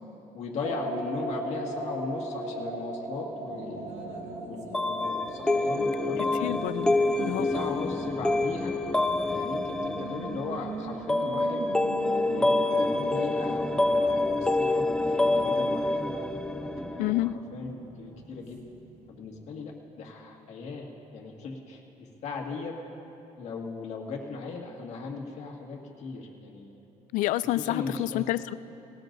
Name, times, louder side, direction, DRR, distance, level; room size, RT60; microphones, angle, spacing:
voice 1, 0.3-6.3 7.3-8.8 9.3-11.7 12.3-16.0 16.6-18.6 19.1-22.7 23.4-26.8 27.4-28.2, left 4 dB, 55° left, -1 dB, 1.9 m, -38 dB
sound 1, 0.6-6.6, right 1 dB, 40° right, 2.3 m, -37 dB
Race car auto racing, 3.2-19.4, right 5 dB, 60° right, 1.4 m, -44 dB
sound 2, 4.7-17.3, left 2 dB, 5° left, 0.5 m, -27 dB
voice 2, 6.4-7.5 17.0-17.4 27.1-28.5, left 15 dB, 75° left, 16 dB, 0.4 m, -29 dB
19.5 x 18.0 x 2.6 m, 3.0 s
cardioid pair, 125°, 14 cm